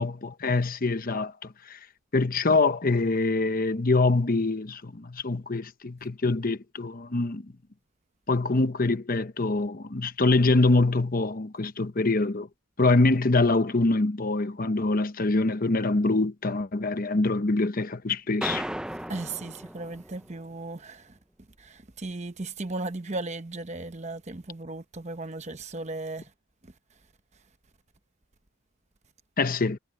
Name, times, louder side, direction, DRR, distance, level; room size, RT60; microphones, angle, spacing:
voice 1, 0.0-1.8 2.1-7.5 8.3-12.5 12.8-18.6 29.4-29.8, left 3 dB, 40° left, 0.9 m, -24 dB
sound 1, 18.4-20.4, right 1 dB, 5° right, 0.5 m, -35 dB
voice 2, 19.1-21.2 21.6-26.3, right 2 dB, 30° right, 1.0 m, -36 dB
head